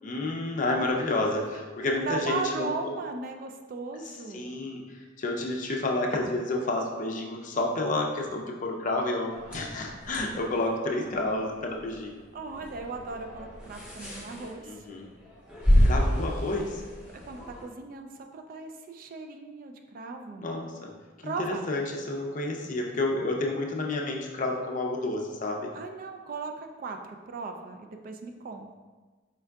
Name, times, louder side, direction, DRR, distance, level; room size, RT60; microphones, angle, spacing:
voice 1, 0.0-2.7 4.3-4.8 5.2-12.2 14.6-15.1 15.8-16.8 20.4-20.9 21.2-25.7, left 2 dB, 45° left, 0 dB, 0.5 m, -30 dB
voice 2, 1.9-4.5 12.3-14.8 17.2-20.5 21.2-21.6 25.7-28.7, right 4 dB, 45° right, 5 dB, 0.3 m, -37 dB
sound 1, 9.3-17.6, equal, 5° right, 0.9 m, -30 dB
4.5 x 3.6 x 2.3 m, 1.3 s
head